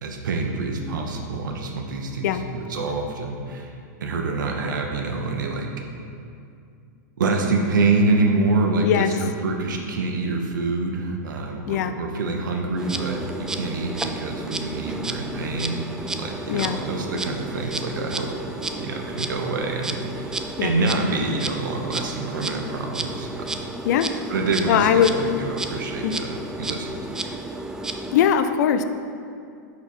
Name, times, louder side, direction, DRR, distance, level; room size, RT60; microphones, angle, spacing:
voice 1, 0.0-3.7 4.0-5.7 7.2-15.9 16.1-18.3 18.8-23.6 24.3-27.0, right 3 dB, 85° right, 2 dB, 1.1 m, -26 dB
voice 2, 8.8-9.1 11.7-12.0 16.5-16.8 20.6-20.8 23.8-24.1 24.7-25.4 26.0-26.1 28.1-28.8, left 9 dB, 60° left, 10 dB, 0.5 m, -20 dB
Insect, 12.8-28.3, right 2 dB, 5° right, 0.3 m, -32 dB
11.0 x 4.3 x 4.4 m, 2.4 s
supercardioid pair, 145°, 10 cm